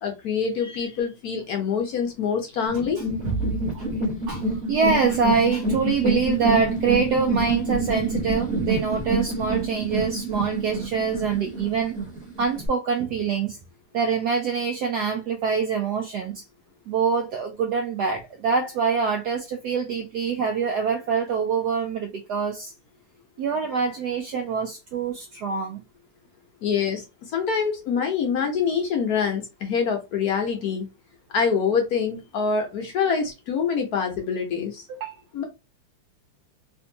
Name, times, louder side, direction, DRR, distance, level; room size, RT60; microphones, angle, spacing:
voice 1, 0.0-3.0 26.6-27.0 27.3-30.9 31.3-34.8 35.3-35.4, left 6 dB, 65° left, 1.0 m, -25 dB
sound 1, 2.7-12.7, right 2 dB, 5° left, 0.6 m, -27 dB
voice 2, 4.3-12.0 12.4-13.6 13.9-16.4 16.9-22.7 23.4-25.8 34.9-35.1, right 5 dB, 85° right, 0.8 m, -25 dB
3.4 x 2.6 x 2.7 m
omnidirectional pair, 2.3 m